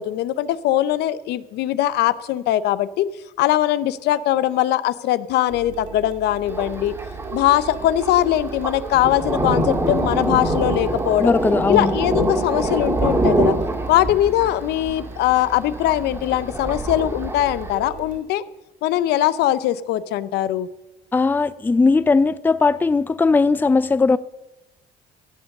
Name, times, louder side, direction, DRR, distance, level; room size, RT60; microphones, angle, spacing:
voice 1, 0.0-3.1 3.4-6.9 7.3-11.3 11.7-13.5 13.9-18.4 18.8-20.7, left 13 dB, 80° left, 0.6 m, -21 dB
sound 1, 5.5-18.2, right 6 dB, 50° right, 2.8 m, -40 dB
Thunder, 6.5-17.7, right 1 dB, 15° right, 2.1 m, -25 dB
voice 2, 11.2-12.0 21.1-24.2, left 4 dB, 10° left, 0.4 m, -18 dB
16.0 x 7.1 x 6.6 m
cardioid pair, 110°, 17 cm